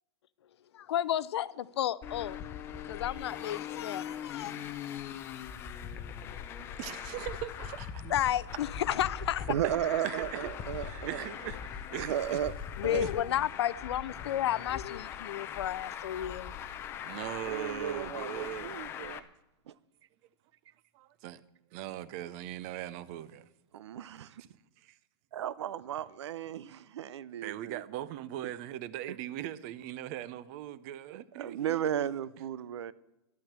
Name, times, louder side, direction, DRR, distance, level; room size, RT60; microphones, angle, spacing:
voice 1, 0.7-2.4 2.8-4.5 8.1-9.5 12.8-16.5, left 11 dB, 75° left, 0.7 m, -32 dB
Traffic noise roadway noise, 2.0-19.2, left 9 dB, 15° left, 0.6 m, -41 dB
voice 2, 6.8-8.3 9.6-10.4 10.7-12.4 12.9-13.1 17.0-18.7 20.9-21.4 21.7-23.5 27.4-32.1, right 12 dB, 30° right, 0.6 m, -40 dB
voice 3, 9.5-11.2 12.0-12.5 12.8-13.0 17.4-19.3 19.7-19.8 23.8-24.3 25.3-27.8 29.1-29.2 31.1-32.9, right 10 dB, 80° right, 0.7 m, -35 dB
12.5 x 11.5 x 7.4 m
supercardioid pair, 170°, 14 cm